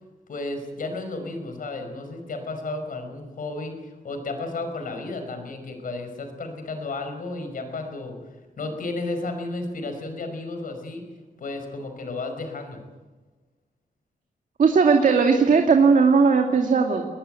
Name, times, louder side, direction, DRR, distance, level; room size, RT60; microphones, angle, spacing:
voice 1, 0.3-11.1 11.4-12.8, left 2 dB, 70° left, 6 dB, 5.3 m, -33 dB
voice 2, 14.6-17.1, right 5 dB, 60° right, 3 dB, 2.2 m, -17 dB
21.5 x 20.0 x 9.1 m, 1.3 s
wide cardioid pair, 135°, 15 cm